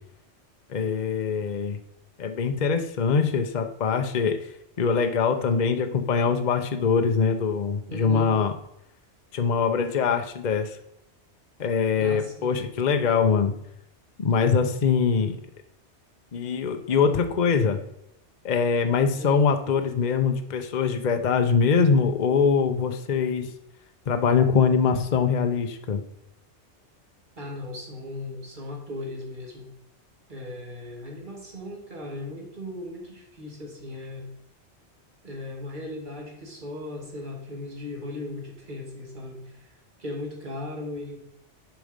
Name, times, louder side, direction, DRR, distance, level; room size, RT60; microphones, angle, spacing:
voice 1, 0.7-1.8 2.2-4.4 4.8-8.5 9.3-10.8 11.6-13.5 14.2-15.4 16.3-17.8 18.4-23.5 24.1-26.0, left 5 dB, 45° left, 7 dB, 0.8 m, -23 dB
voice 2, 7.9-8.3 12.0-12.6 19.1-19.5 27.4-29.7 30.3-34.3 35.2-41.2, left 2 dB, 45° right, -2 dB, 2.5 m, -37 dB
8.0 x 5.2 x 5.1 m, 0.80 s
omnidirectional pair, 1.2 m